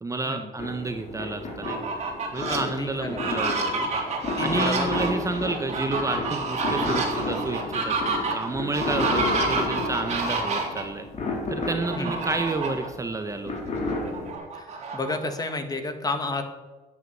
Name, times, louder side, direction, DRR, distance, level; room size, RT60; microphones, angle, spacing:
voice 1, 0.0-1.9 2.3-4.0 4.4-8.0 8.3-11.1 11.5-13.5, right 3 dB, 20° right, 6 dB, 1.2 m, -30 dB
sound 1, 0.6-14.3, left 2 dB, 40° left, 4.3 m, -32 dB
Fowl, 1.5-2.6 3.1-10.8 11.8-12.9 13.3-13.4 13.8-15.5, right 3 dB, 40° right, 3.8 m, -29 dB
voice 2, 2.5-3.1 4.4-4.9 12.0-12.2 14.5-16.4, left 3 dB, 20° left, 7 dB, 2.0 m, -31 dB
10.5 x 9.9 x 8.3 m, 1.2 s
cardioid pair, 110°, 17 cm